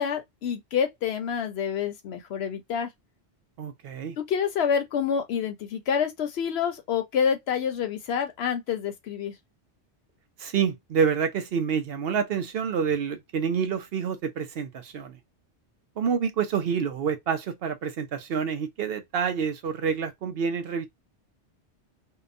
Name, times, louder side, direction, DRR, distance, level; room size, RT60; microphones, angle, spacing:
voice 1, 0.0-2.9 4.2-9.3, left 7 dB, 70° left, 0.8 m, -27 dB
voice 2, 3.6-4.2 10.4-15.2 16.0-20.9, right 6 dB, 65° right, 0.7 m, -28 dB
2.8 x 2.1 x 2.5 m
omnidirectional pair, 1.2 m